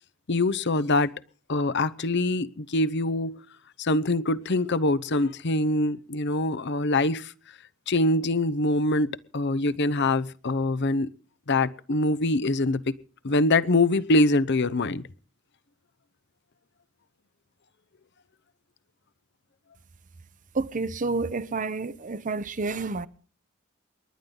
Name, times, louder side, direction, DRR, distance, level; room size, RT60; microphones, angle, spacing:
voice 1, 0.3-1.1 1.5-3.4 3.8-7.3 7.9-11.1 11.5-12.9 13.2-15.0, left 2 dB, 55° left, 0.8 m, -24 dB
voice 2, 20.5-23.1, right 3 dB, 40° right, 0.8 m, -29 dB
28.5 x 11.5 x 3.8 m
head